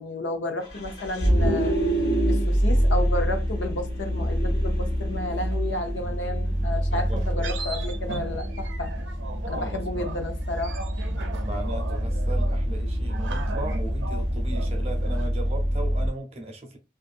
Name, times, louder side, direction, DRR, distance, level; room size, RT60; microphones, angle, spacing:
voice 1, 0.0-1.7 2.2-8.9 9.5-10.8, left 2 dB, 85° left, 0.6 m, -32 dB
Vehicle, 0.6-16.1, equal, 60° left, 1.1 m, -26 dB
sound 1, 4.5-15.3, right 3 dB, 90° right, 0.5 m, -39 dB
voice 2, 6.9-7.2 9.6-10.1 11.4-16.8, right 1 dB, 35° right, 0.7 m, -37 dB
2.6 x 2.5 x 2.4 m
head